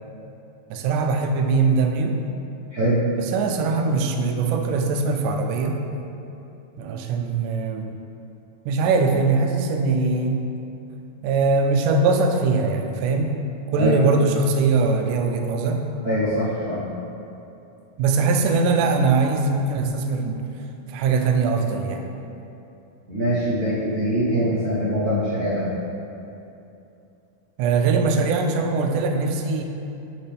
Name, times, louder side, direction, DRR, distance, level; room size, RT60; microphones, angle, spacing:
voice 1, 0.7-2.2 3.2-5.8 6.8-7.9 8.7-10.4 11.2-13.3 13.7-15.8 18.0-20.4 20.9-22.1 27.6-29.6, right 4 dB, 80° right, 4 dB, 2.0 m, -21 dB
voice 2, 16.0-16.8 23.1-25.7, equal, 55° right, -13 dB, 1.0 m, -23 dB
7.6 x 6.9 x 3.4 m, 2.8 s
omnidirectional pair, 4.1 m